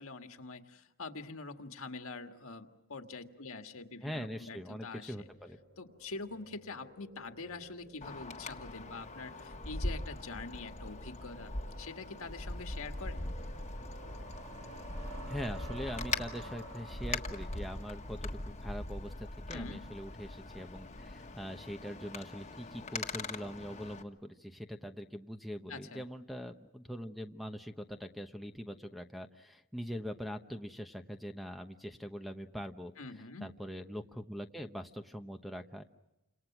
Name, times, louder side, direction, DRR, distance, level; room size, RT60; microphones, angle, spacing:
voice 1, 0.0-5.1 5.8-13.3 19.5-19.9 25.7-26.1 33.0-33.5, left 3 dB, 65° left, 6 dB, 1.8 m, -45 dB
sound 1, 3.5-18.7, right 1 dB, 80° right, 4.7 m, -53 dB
voice 2, 4.0-5.6 15.3-32.9 33.4-35.8, equal, ahead, 6 dB, 1.0 m, -43 dB
Wind, 8.0-24.0, left 2 dB, 30° left, 1.5 m, -41 dB
29.5 x 26.5 x 6.0 m, 0.95 s
head